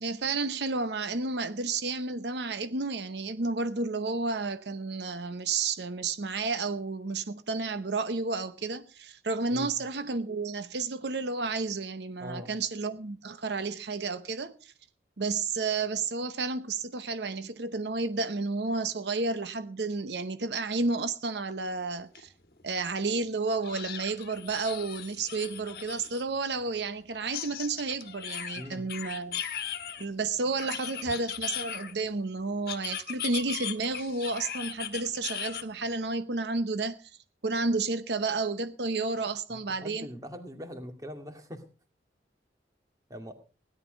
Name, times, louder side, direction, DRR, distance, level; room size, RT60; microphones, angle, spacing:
voice 1, 0.0-14.7 15.2-22.3 22.6-29.4 30.0-37.1 37.4-40.1, right 3 dB, 75° right, 0.8 m, -31 dB
voice 2, 12.2-12.5 28.5-28.9 39.5-41.6 43.1-43.3, equal, 20° right, 2.1 m, -42 dB
sound 1, 22.1-22.2 22.6-22.7 23.6-26.2 27.3-30.0 30.6-32.1 32.7-35.6, left 9 dB, 55° left, 1.5 m, -38 dB
17.0 x 11.0 x 5.1 m
head